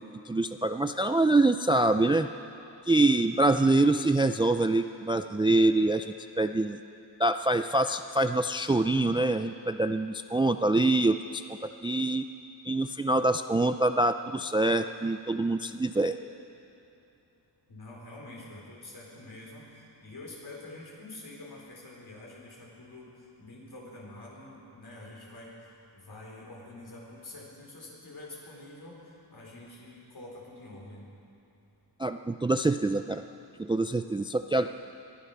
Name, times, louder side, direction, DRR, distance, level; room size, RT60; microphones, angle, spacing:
voice 1, 0.0-2.3 2.9-6.8 7.2-12.2 12.7-16.2 32.0-33.2 33.6-34.7, right 2 dB, 15° right, 9 dB, 0.3 m, -25 dB
voice 2, 17.7-25.5 25.9-31.1, left 2 dB, 60° left, -3 dB, 4.2 m, -46 dB
21.5 x 11.5 x 5.8 m, 2.9 s
wide cardioid pair, 95°, 42 cm